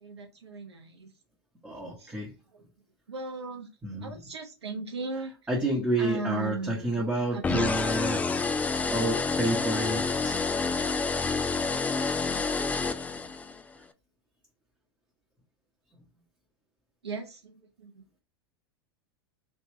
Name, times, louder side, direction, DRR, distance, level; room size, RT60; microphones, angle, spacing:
voice 1, 0.0-1.1 2.0-2.2 3.1-3.7 4.0-5.3 6.0-7.0 7.3-7.8 17.0-17.9, right 4 dB, 80° right, 0.8 m, -37 dB
voice 2, 1.6-2.3 3.8-4.2 5.5-8.3 8.9-10.4, right 1 dB, 10° right, 1.1 m, -29 dB
sound 1, 7.4-13.6, left 4 dB, 10° left, 0.3 m, -28 dB
3.3 x 2.9 x 3.1 m
hypercardioid pair, 95°, 14 cm